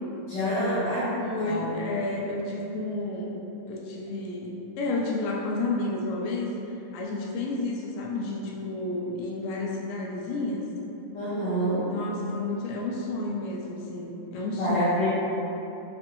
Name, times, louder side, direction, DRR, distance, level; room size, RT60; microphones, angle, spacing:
voice 1, 0.3-1.0 1.4-1.7 11.1-11.9 14.6-15.1, equal, 50° left, -15 dB, 1.3 m, -27 dB
voice 2, 1.2-3.4 3.7-6.5 6.9-10.6 11.9-15.1, left 2 dB, 90° left, -2 dB, 2.1 m, -31 dB
6.4 x 2.5 x 2.9 m, 3.0 s
omnidirectional pair, 3.4 m